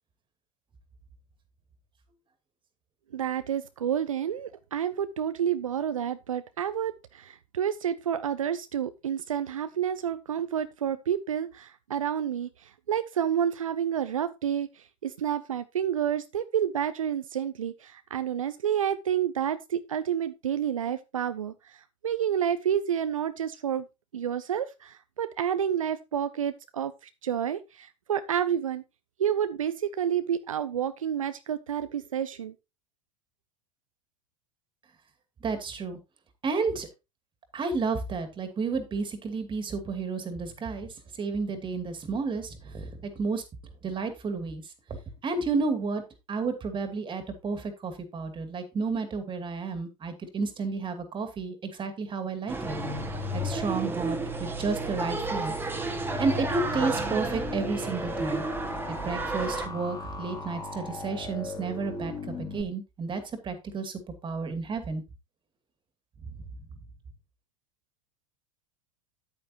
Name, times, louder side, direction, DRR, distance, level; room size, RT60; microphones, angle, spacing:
voice 1, 3.1-23.9 24.1-28.8 29.2-32.5, right 9 dB, 85° right, 0.5 m, -29 dB
voice 2, 35.4-36.0 36.4-36.9 37.5-43.4 43.8-44.7 45.2-46.0 46.3-52.8 53.3-55.5 56.2-58.4 58.9-63.9 64.2-65.0, right 4 dB, 30° right, 2.5 m, -31 dB
sound 1, 52.5-59.7, right 3 dB, 15° right, 1.8 m, -32 dB
sound 2, 52.6-62.6, left 3 dB, 20° left, 3.0 m, -37 dB
9.2 x 8.9 x 2.9 m
figure-of-eight pair, 75°, 17 cm